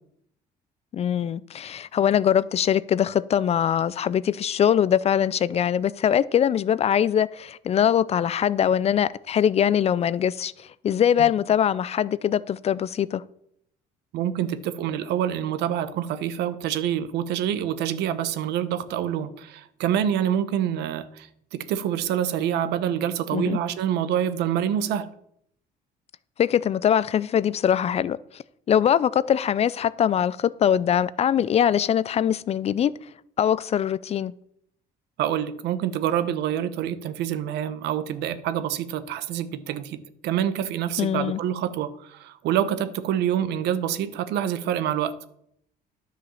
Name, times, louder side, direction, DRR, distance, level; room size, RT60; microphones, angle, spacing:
voice 1, 0.9-10.5 10.8-13.2 23.3-23.6 26.4-32.9 33.4-34.3 41.0-41.4, left 9 dB, 40° left, 0.4 m, -22 dB
voice 2, 14.1-25.1 35.2-45.1, right 10 dB, 80° right, 0.8 m, -26 dB
10.5 x 5.1 x 7.0 m
cardioid pair, 110°, 17 cm